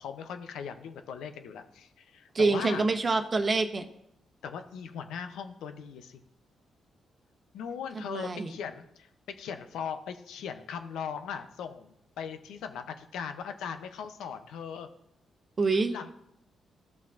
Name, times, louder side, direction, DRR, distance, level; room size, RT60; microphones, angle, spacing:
voice 1, 0.0-2.9 4.4-6.2 7.5-9.1 9.4-14.9 15.9-16.1, left 7 dB, 80° left, 8 dB, 0.6 m, -39 dB
voice 2, 2.3-3.8 8.0-8.5 15.6-15.9, right 3 dB, 45° right, 6 dB, 0.9 m, -26 dB
14.0 x 5.8 x 2.5 m, 0.78 s
supercardioid pair, 55°, 0 cm